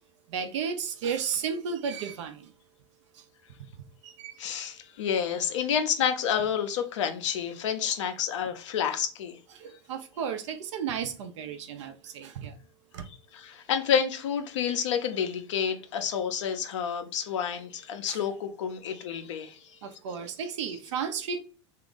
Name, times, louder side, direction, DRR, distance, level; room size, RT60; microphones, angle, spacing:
voice 1, 0.3-2.5 4.0-4.3 9.6-12.5 12.9-13.0 18.0-18.2 19.8-21.4, right 7 dB, 75° right, 0.8 m, -33 dB
voice 2, 4.4-9.4 13.3-19.6, left 8 dB, 80° left, 0.9 m, -29 dB
3.4 x 2.8 x 3.9 m
hypercardioid pair, 95°, 15 cm